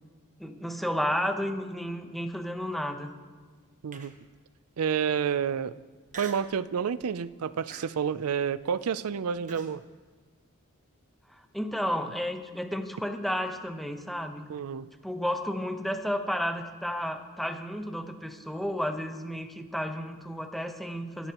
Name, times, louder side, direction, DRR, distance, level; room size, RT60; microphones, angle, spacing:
voice 1, 0.4-3.1 11.3-14.5 15.0-21.3, equal, ahead, 5 dB, 0.9 m, -32 dB
Human voice, 3.9-4.4 4.9-5.0 6.1-6.6 7.0-7.3 7.7-9.8, right 4 dB, 35° right, 1.0 m, -45 dB
voice 2, 4.8-5.7 6.2-9.8 14.5-14.9, right 7 dB, 85° right, 16 dB, 0.4 m, -29 dB
25.0 x 11.0 x 3.0 m, 1.5 s
head